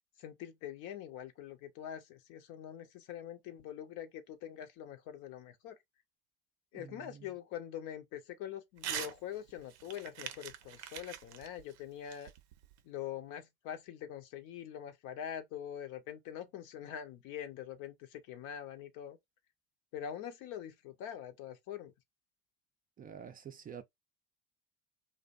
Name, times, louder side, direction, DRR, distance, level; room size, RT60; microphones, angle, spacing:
voice 1, 0.2-5.8 6.7-12.3 12.8-19.2 19.9-21.9, left 10 dB, 60° left, 0.7 m, -44 dB
voice 2, 6.7-7.3 23.0-23.8, right 8 dB, 25° right, 0.4 m, -48 dB
Crumpling crinkling / Tearing, 8.8-9.2 9.5-12.8, right 10 dB, 75° right, 0.5 m, -43 dB
2.5 x 2.1 x 2.4 m
hypercardioid pair, 65°, 34 cm